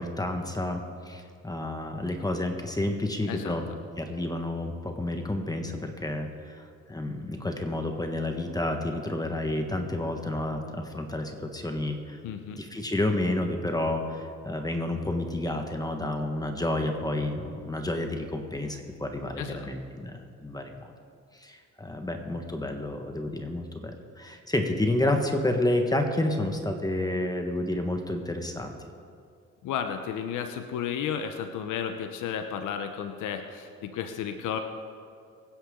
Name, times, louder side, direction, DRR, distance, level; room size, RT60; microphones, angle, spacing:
voice 1, 0.0-3.7 4.0-12.2 12.5-20.9 21.3-28.7, left 1 dB, 10° left, 4 dB, 1.5 m, -30 dB
voice 2, 12.2-12.6 19.4-19.7 29.6-34.6, left 8 dB, 90° left, 7 dB, 0.9 m, -33 dB
23.5 x 10.0 x 3.8 m, 2.3 s
cardioid pair, 90°, 30 cm